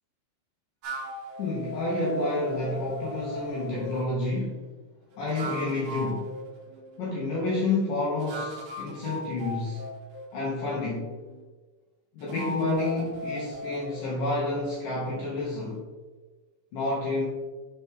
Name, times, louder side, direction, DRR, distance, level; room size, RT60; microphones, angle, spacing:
sound 1, 0.8-4.1 5.1-7.3 8.2-11.4 12.2-15.8, left 1 dB, 60° right, 2.2 m, -38 dB
voice 1, 1.4-4.7 5.2-6.4 7.0-9.9 10.3-11.1 12.1-15.8 16.7-17.2, left 2 dB, 80° left, -5 dB, 1.9 m, -29 dB
6.9 x 4.3 x 3.6 m, 1.3 s
omnidirectional pair, 5.5 m